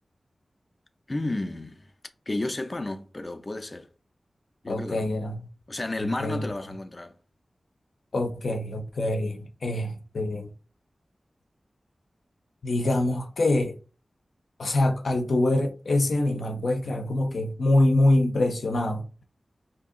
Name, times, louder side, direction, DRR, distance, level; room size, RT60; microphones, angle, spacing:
voice 1, 1.1-1.9 2.3-3.9 4.6-5.1 5.7-7.1, left 2 dB, 35° left, 0.5 m, -32 dB
voice 2, 4.7-5.5 6.0-6.5 8.1-10.5 12.6-13.7 14.6-19.0, left 1 dB, 85° left, 0.6 m, -25 dB
2.7 x 2.7 x 3.7 m
wide cardioid pair, 75°, 0 cm